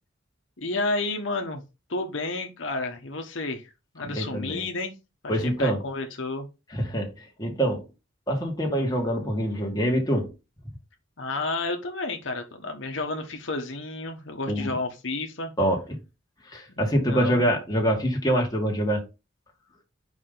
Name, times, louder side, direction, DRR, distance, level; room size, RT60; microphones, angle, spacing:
voice 1, 0.6-1.6 1.9-3.7 3.9-5.0 5.2-6.5 11.2-15.5 16.8-17.4, left 2 dB, 70° left, 1.1 m, -31 dB
voice 2, 4.0-4.6 5.3-5.8 6.7-7.8 8.3-10.3 14.5-14.7 15.6-16.0 16.5-19.0, equal, 20° left, 1.7 m, -25 dB
5.2 x 4.9 x 3.9 m
head